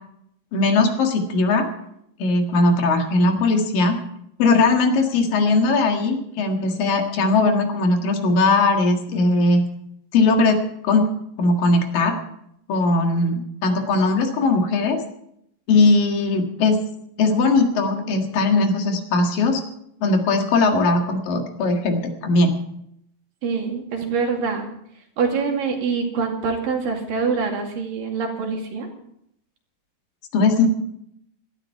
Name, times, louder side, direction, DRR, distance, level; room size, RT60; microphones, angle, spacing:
voice 1, 0.5-1.7 2.2-4.0 4.4-9.6 10.1-11.1 11.4-12.2 12.7-15.0 15.7-16.8 17.2-19.6 20.0-22.6 30.3-30.7, left 3 dB, 70° left, 3 dB, 3.5 m, -19 dB
voice 2, 23.4-24.7 25.2-28.9, right 5 dB, 70° right, 2 dB, 4.0 m, -25 dB
17.5 x 13.0 x 4.7 m, 0.73 s
omnidirectional pair, 4.2 m